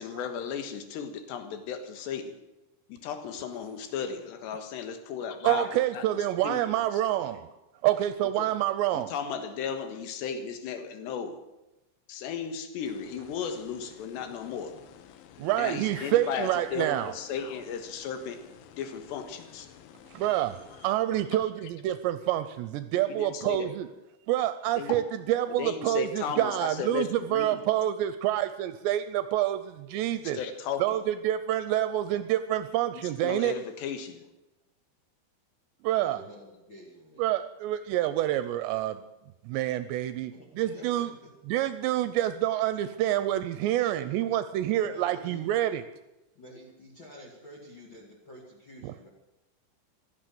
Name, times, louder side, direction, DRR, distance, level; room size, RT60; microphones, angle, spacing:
voice 1, 0.0-2.4 2.9-6.0 6.4-6.7 8.4-8.5 8.9-11.4 12.1-14.8 15.6-18.4 18.8-19.7 23.2-23.7 24.8-25.0 25.6-27.6 30.3-30.8 32.9-34.3, left 7 dB, 70° left, 8 dB, 3.5 m, -35 dB
voice 2, 5.4-7.5 7.8-9.1 15.4-17.1 20.1-23.9 24.3-30.4 30.8-33.6 35.8-36.2 37.2-39.0 39.4-41.1 41.5-45.9 48.8-48.9, right 13 dB, 80° right, 12 dB, 2.7 m, -27 dB
sound 1, 12.9-20.9, left 10 dB, 90° left, 3.6 m, -53 dB
voice 3, 36.0-37.3 40.3-41.3 44.7-45.5 46.3-49.1, left 1 dB, 35° left, 1 dB, 2.2 m, -49 dB
15.5 x 12.5 x 7.7 m, 0.99 s
omnidirectional pair, 5.3 m